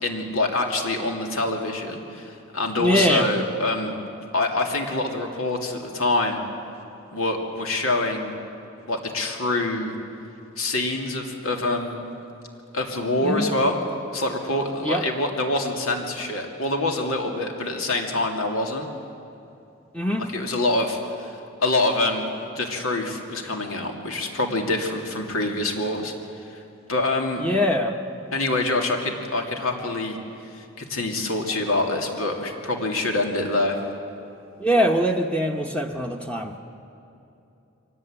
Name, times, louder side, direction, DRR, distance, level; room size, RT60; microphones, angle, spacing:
voice 1, 0.0-3.9 4.3-6.4 7.1-8.3 8.9-10.0 10.6-12.0 12.7-13.8 14.1-18.9 20.2-22.3 22.5-26.1 26.5-26.6 26.9-27.4 28.3-30.2 30.5-33.8, left 2 dB, 85° left, 2 dB, 2.8 m, -25 dB
voice 2, 2.8-3.3 13.2-13.5 14.8-15.0 19.9-20.3 27.4-28.0 34.6-36.6, equal, 5° left, 2 dB, 1.0 m, -22 dB
23.5 x 18.5 x 8.9 m, 2.8 s
head